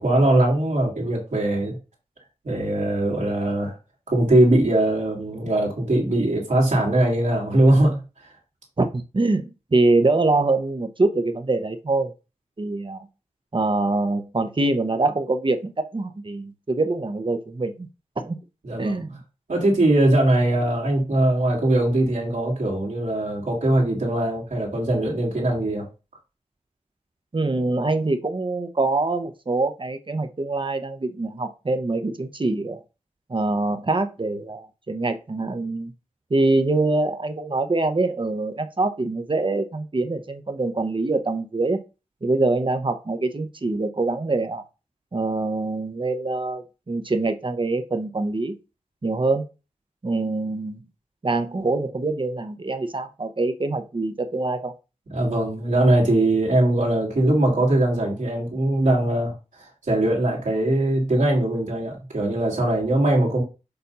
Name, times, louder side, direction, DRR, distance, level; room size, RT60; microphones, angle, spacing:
voice 1, 0.0-1.8 2.4-3.7 4.1-8.3 18.6-19.0 19.5-25.9 55.1-59.3 59.6-63.4, right 1 dB, 75° right, -3 dB, 2.2 m, -21 dB
voice 2, 8.8-12.1 12.6-13.1 13.5-17.9 18.2-18.4 18.8-19.2 27.3-32.8 33.3-35.9 36.3-41.8 42.2-44.6 45.1-48.6 49.0-49.4 50.0-50.8 51.2-54.7, right 2 dB, 40° right, 8 dB, 0.9 m, -24 dB
6.8 x 2.7 x 5.4 m, 0.30 s
cardioid pair, 50°, 13 cm